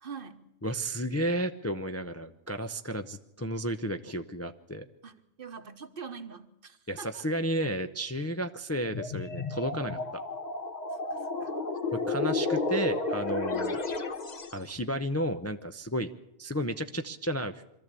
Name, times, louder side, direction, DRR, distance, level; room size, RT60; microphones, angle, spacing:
voice 1, 0.0-0.5 5.0-7.2 10.9-11.5 13.5-13.6, right 5 dB, 55° right, 10 dB, 1.2 m, -44 dB
voice 2, 0.6-4.9 6.9-10.0 12.1-13.8 14.5-16.1 16.4-17.6, equal, 20° left, 7 dB, 0.5 m, -32 dB
sound 1, 8.9-14.6, left 3 dB, 40° left, 1.2 m, -32 dB
23.0 x 14.0 x 8.3 m, 0.88 s
omnidirectional pair, 1.2 m